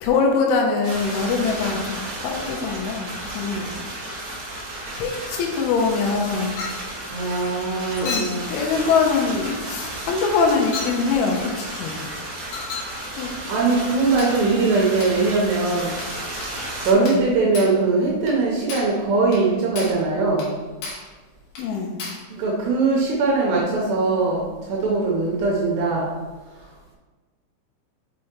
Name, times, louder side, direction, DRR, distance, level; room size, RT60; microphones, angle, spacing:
voice 1, 0.0-3.7 5.0-6.7 8.0-12.0 13.1-13.3 13.9-14.7 16.9-17.2 21.6-22.0, left 4 dB, 85° left, 1 dB, 3.1 m, -23 dB
sound 1, 0.8-16.9, right 1 dB, 60° right, 1.9 m, -33 dB
Chink clink, 6.6-6.9 8.1-8.4 9.4-9.6 10.7-11.0 12.5-12.9 14.2-14.4 15.0-15.2 16.0-16.2 16.4-16.6 17.1-17.3 17.5-17.8 18.3-18.4 18.7-19.0 19.3-19.5 19.8-20.0 20.4-20.5 20.8-21.1 21.6-21.7 22.0-22.3, left 4 dB, 70° left, 2.5 m, -33 dB
voice 2, 7.1-8.5 13.5-15.9 16.8-20.6 22.3-26.1, right 3 dB, 80° right, -3 dB, 2.6 m, -21 dB
6.4 x 5.6 x 2.9 m, 1.3 s
omnidirectional pair, 5.7 m